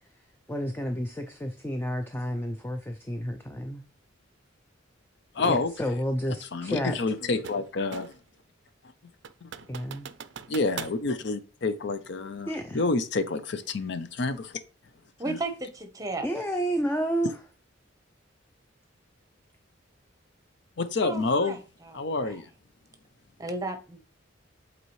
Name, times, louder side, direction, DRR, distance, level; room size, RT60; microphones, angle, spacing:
voice 1, 0.5-3.8 5.4-7.0 9.7-10.1 12.5-12.8 16.2-17.3, equal, 10° left, 0.4 m, -30 dB
voice 2, 5.3-5.7 6.5-8.1 10.5-14.6 15.3-15.4 20.8-21.6 21.9-22.5, left 3 dB, 60° left, 0.5 m, -28 dB
sound 1, 5.4-5.6 7.0-8.3 8.7-8.8 9.2-11.0, right 7 dB, 60° right, 0.4 m, -42 dB
voice 3, 15.2-16.3 21.0-21.6 22.2-22.3 23.4-24.1, right 2 dB, 20° right, 0.9 m, -34 dB
8.2 x 4.1 x 3.1 m
head